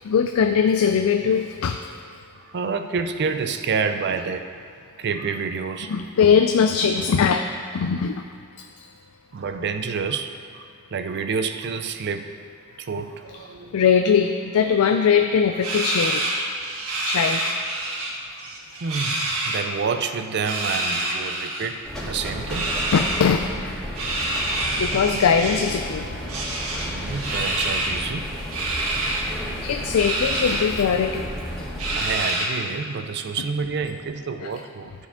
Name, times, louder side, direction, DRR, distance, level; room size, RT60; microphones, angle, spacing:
voice 1, 0.0-1.9 5.9-7.4 7.7-8.2 8.6-8.7 13.7-16.3 17.0-17.4 22.9-23.5 24.8-26.1 29.6-31.2 34.4-34.5, left 6 dB, 80° left, 5 dB, 0.4 m, -20 dB
voice 2, 2.4-4.6 5.0-6.0 9.3-12.3 12.8-13.7 18.3-18.5 18.8-22.8 24.0-24.2 26.9-28.3 32.0-34.9, right 5 dB, 50° right, 8 dB, 0.4 m, -28 dB
sound 1, 15.6-18.1 18.4-19.6 20.3-21.7 22.5-23.2 24.0-25.8 26.3-28.0 28.5-29.2 29.9-30.7 31.1-31.2 31.8-32.7, right 2 dB, 85° right, 1.5 m, -27 dB
sound 2, 21.8-32.1, equal, ahead, 1.9 m, -33 dB
13.0 x 4.6 x 3.6 m, 2.4 s
head